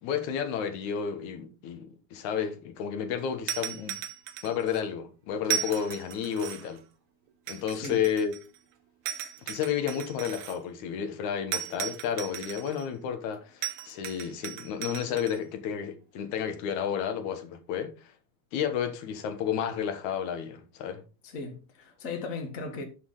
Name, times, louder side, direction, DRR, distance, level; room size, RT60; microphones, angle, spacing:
voice 1, 0.0-4.0 4.4-6.8 7.5-8.3 9.4-17.9 18.5-21.0, left 8 dB, 75° left, 2.5 m, -31 dB
sound 1, 3.5-4.8 5.4-6.8 7.5-8.6 9.1-10.6 11.5-12.9 13.6-15.4, right 10 dB, 75° right, 2.0 m, -36 dB
voice 2, 7.7-8.1 21.2-22.8, left 4 dB, 40° left, 1.3 m, -37 dB
8.4 x 5.9 x 3.7 m
omnidirectional pair, 3.5 m